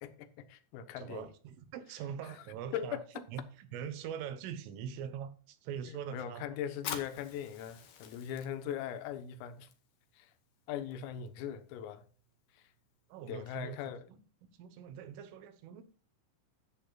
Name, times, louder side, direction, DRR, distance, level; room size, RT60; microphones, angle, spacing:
voice 1, 0.0-1.3 2.2-2.4 2.7-3.2 5.9-9.7 10.1-10.3 10.7-12.0 12.5-12.6 13.3-14.1, left 9 dB, 85° left, 3.8 m, -40 dB
voice 2, 1.0-3.0 3.3-6.5 13.1-15.8, right 8 dB, 80° right, 3.7 m, -43 dB
Fire, 6.7-13.9, left 8 dB, 60° left, 3.1 m, -49 dB
13.5 x 10.5 x 2.4 m
omnidirectional pair, 5.9 m